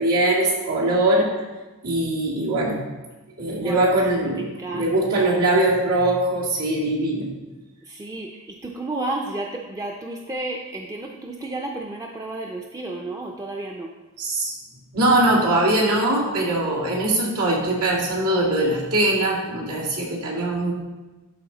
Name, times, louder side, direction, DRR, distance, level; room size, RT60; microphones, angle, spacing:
voice 1, 0.0-1.3 1.8-2.9 3.4-7.3 14.2-14.5 14.9-20.7, right 1 dB, 90° right, -5 dB, 2.3 m, -21 dB
voice 2, 3.6-3.9 4.2-5.3 7.9-13.9, right 2 dB, 15° right, 0 dB, 0.5 m, -32 dB
12.0 x 4.3 x 3.9 m, 1.2 s
head